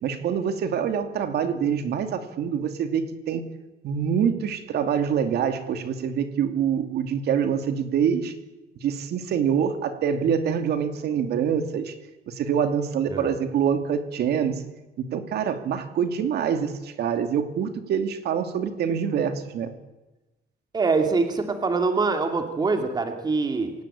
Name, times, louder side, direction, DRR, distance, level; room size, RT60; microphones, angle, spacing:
voice 1, 0.0-3.4 3.8-8.3 8.8-11.9 12.3-14.5 15.1-19.7, right 7 dB, 60° right, 8 dB, 2.6 m, -25 dB
voice 2, 20.7-23.7, right 4 dB, 20° right, 6 dB, 2.4 m, -24 dB
26.5 x 18.0 x 8.8 m, 1.1 s
cardioid pair, 160°, 19 cm